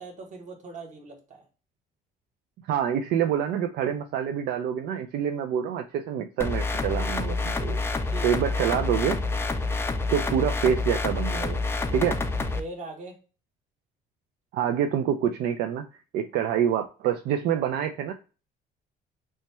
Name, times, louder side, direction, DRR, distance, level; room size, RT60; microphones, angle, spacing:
voice 1, 0.0-1.4 8.1-8.4 12.6-13.2, right 2 dB, 45° right, 2 dB, 1.2 m, -40 dB
voice 2, 2.7-7.8 8.2-9.2 10.1-11.6 11.9-12.2 14.5-15.9 16.1-18.1, right 9 dB, 75° right, 5 dB, 0.4 m, -26 dB
sound 1, 6.4-12.6, left 3 dB, 15° left, 0.3 m, -28 dB
3.1 x 2.2 x 4.2 m, 0.34 s
cardioid pair, 110°, 17 cm